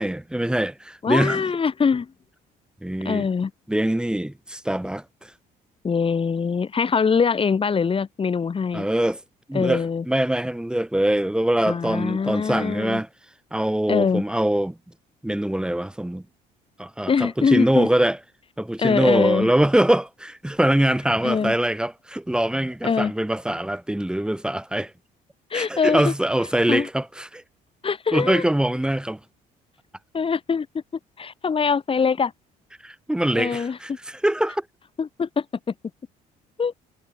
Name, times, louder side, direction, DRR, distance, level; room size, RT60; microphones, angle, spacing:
voice 1, 0.0-1.5 2.8-3.3 3.7-5.3 8.7-9.2 9.5-13.1 13.5-14.8 15.2-16.2 16.8-18.2 18.6-24.9 25.5-27.4 28.1-29.2 32.8-34.7, right 1 dB, 5° right, 3.7 m, -23 dB
voice 2, 1.0-2.1 3.1-3.5 5.8-8.9 9.5-10.0 11.7-13.0 13.9-14.2 17.1-17.9 18.8-19.5 21.2-21.5 22.8-23.1 25.5-26.1 26.7-26.9 27.8-28.4 30.1-30.8 31.2-32.3 33.3-34.0 35.0-35.5 36.6-36.7, left 5 dB, 30° left, 7.0 m, -23 dB
cardioid pair, 110°, 17 cm